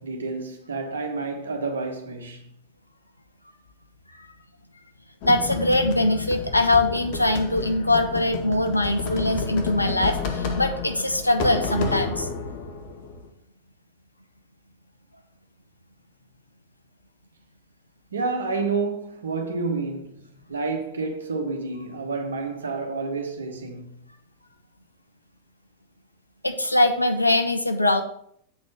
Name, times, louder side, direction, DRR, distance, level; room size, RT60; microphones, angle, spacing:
voice 1, 0.0-2.5 18.1-24.1, right 4 dB, 70° right, 1.2 m, -29 dB
voice 2, 5.2-12.3 26.4-28.0, left 1 dB, 85° left, 0.8 m, -22 dB
sound 1, 5.2-13.3, left 4 dB, 50° left, 1.1 m, -31 dB
7.5 x 4.2 x 6.2 m
figure-of-eight pair, 90°, 0 cm